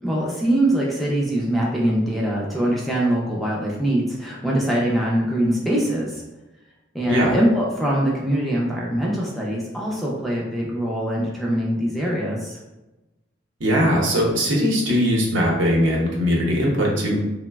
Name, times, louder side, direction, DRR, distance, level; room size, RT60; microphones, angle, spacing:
voice 1, 0.0-6.2 6.9-12.6, right 1 dB, ahead, -4 dB, 0.4 m, -23 dB
voice 2, 13.6-17.2, equal, 85° right, -3 dB, 0.7 m, -20 dB
3.1 x 2.0 x 2.2 m, 1.0 s
head